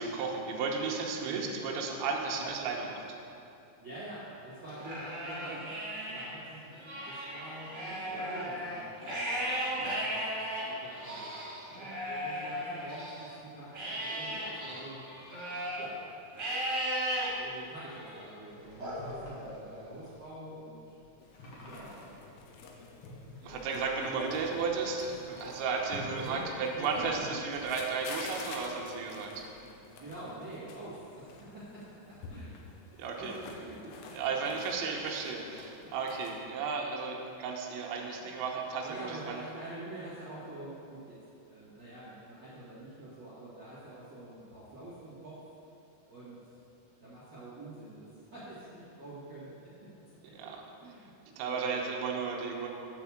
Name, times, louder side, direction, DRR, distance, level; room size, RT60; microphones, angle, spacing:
voice 1, 0.0-3.0 17.1-17.2 23.4-29.4 33.0-33.3 34.1-39.4 50.4-50.6 51.4-52.7, right 4 dB, 80° right, 0 dB, 3.1 m, -34 dB
voice 2, 3.8-5.8 6.1-6.7 7.0-10.2 10.7-11.3 11.7-15.0 15.8-16.0 17.3-21.0 21.6-22.2 23.7-24.1 24.4-24.5 26.0-27.4 29.6-32.5 32.9-34.1 38.8-45.4 46.0-46.4 47.0-50.0 50.4-50.5 50.8-51.8, right 1 dB, 60° right, -12 dB, 1.1 m, -46 dB
Livestock farm animals working animals, 4.7-6.3 6.7-13.3 13.7-15.9 16.4-17.3 17.8-18.2 18.8-19.9, equal, 35° right, 1.9 m, -36 dB
sound 1, 17.1-28.7 29.1-29.8, left 2 dB, 65° left, 1.3 m, -51 dB
sound 2, 21.2-36.4, left 4 dB, 90° left, 3.2 m, -49 dB
8.8 x 4.8 x 7.1 m, 2.7 s
omnidirectional pair, 5.4 m